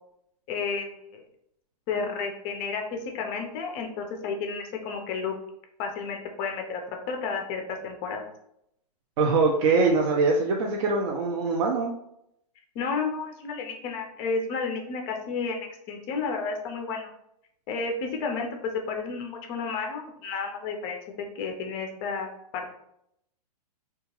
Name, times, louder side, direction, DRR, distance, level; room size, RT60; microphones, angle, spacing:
voice 1, 0.5-1.2 1.9-5.3 5.8-6.8 7.1-8.2 12.8-17.1 17.7-18.5 18.9-21.0 21.4-22.7, left 4 dB, 25° left, 3 dB, 0.4 m, -32 dB
voice 2, 9.2-11.9, right 3 dB, 50° right, 0 dB, 0.4 m, -23 dB
2.7 x 2.2 x 2.9 m, 0.76 s
hypercardioid pair, 150°, 21 cm